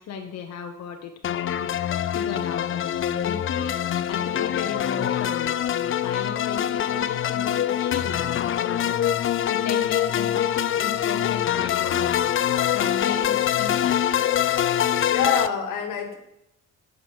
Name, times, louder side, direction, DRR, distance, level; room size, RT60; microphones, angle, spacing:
voice 1, 0.0-1.7 2.1-3.8 4.1-9.0 9.5-12.1 12.7-14.0, left 6 dB, 60° left, 4 dB, 1.1 m, -35 dB
sound 1, 1.2-15.5, left 10 dB, 45° left, 0.5 m, -24 dB
voice 2, 14.6-16.2, left 6 dB, 90° left, 7 dB, 1.7 m, -27 dB
9.8 x 6.2 x 6.4 m, 0.81 s
cardioid pair, 90°, 30 cm